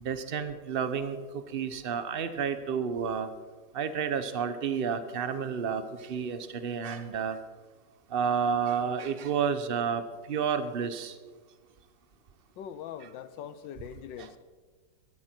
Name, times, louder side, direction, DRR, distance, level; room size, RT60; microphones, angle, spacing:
voice 1, 0.0-1.2 1.5-3.3 3.7-5.8 6.1-7.4 8.1-10.0 10.3-11.1 14.2-14.3, right 7 dB, 45° right, 0.8 m, -30 dB
voice 2, 12.6-14.4, left 9 dB, 85° left, 1.5 m, -42 dB
17.5 x 13.0 x 4.4 m
omnidirectional pair, 2.0 m